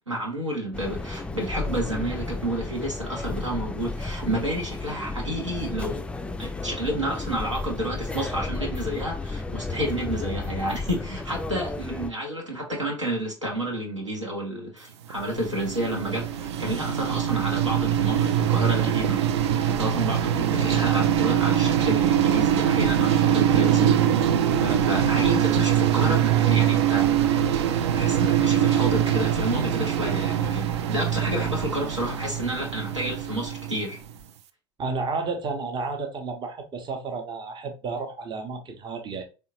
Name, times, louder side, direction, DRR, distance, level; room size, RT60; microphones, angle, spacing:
voice 1, 0.1-6.0 6.4-24.3 24.6-27.5 27.9-34.0, right 1 dB, 85° right, 1.1 m, -30 dB
sound 1, 0.7-12.1, left 3 dB, 5° left, 0.3 m, -33 dB
sound 2, 15.1-34.1, right 10 dB, 65° right, 0.4 m, -23 dB
voice 2, 24.5-24.8 34.8-39.2, right 4 dB, 30° right, 0.8 m, -32 dB
3.6 x 3.3 x 2.9 m
figure-of-eight pair, 65°, 15 cm